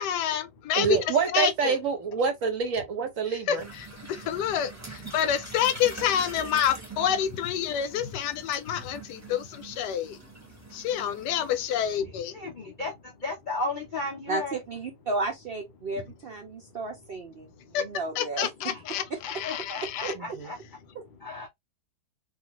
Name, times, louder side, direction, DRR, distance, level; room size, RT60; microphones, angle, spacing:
voice 1, 0.0-1.0 1.3-1.8 3.5-10.2 10.7-12.3 17.7-17.8 18.2-20.1, left 9 dB, 80° left, 1.1 m, -28 dB
voice 2, 0.7-3.7 20.4-20.5, right 5 dB, 60° right, 0.9 m, -26 dB
sound 1, 3.6-12.0, right 3 dB, 15° right, 0.7 m, -44 dB
voice 3, 9.9-11.1 11.8-14.6 16.6-16.8 17.4-17.8 18.7-19.1 19.4-21.5, left 3 dB, 60° left, 0.5 m, -37 dB
voice 4, 14.3-18.5 19.1-19.2 20.0-20.1, right 3 dB, 85° right, 0.5 m, -33 dB
2.7 x 2.4 x 2.8 m
omnidirectional pair, 1.8 m